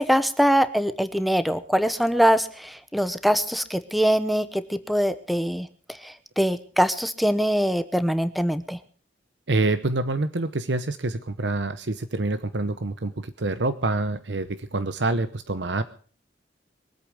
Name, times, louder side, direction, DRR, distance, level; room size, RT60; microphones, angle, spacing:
voice 1, 0.0-5.7 6.4-8.8, equal, ahead, 12 dB, 0.9 m, -23 dB
voice 2, 9.5-15.8, right 2 dB, 80° right, 11 dB, 0.9 m, -26 dB
23.0 x 8.6 x 6.4 m, 0.43 s
head